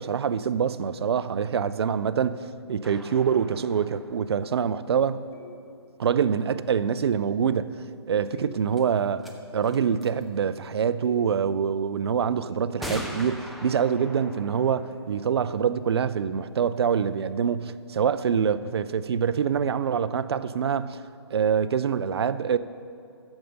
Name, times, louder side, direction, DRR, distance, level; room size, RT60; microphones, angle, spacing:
voice 1, 0.0-2.4 2.7-5.2 6.0-21.0 21.3-22.6, right 7 dB, 65° right, 14 dB, 0.5 m, -25 dB
sound 1, 2.8-5.6 8.2-8.3 8.8-8.9 9.2-9.3 9.6-10.2 11.5-11.6 12.8-16.4, equal, ahead, 0.7 m, -41 dB
sound 2, 5.3-5.9 7.1-7.5 8.3-8.9 9.7-10.2 11.0-11.5 12.2-13.8 14.9-15.3 16.8-17.0, left 2 dB, 60° left, 1.8 m, -48 dB
12.0 x 7.2 x 5.4 m, 2.5 s
hypercardioid pair, 140°, 14 cm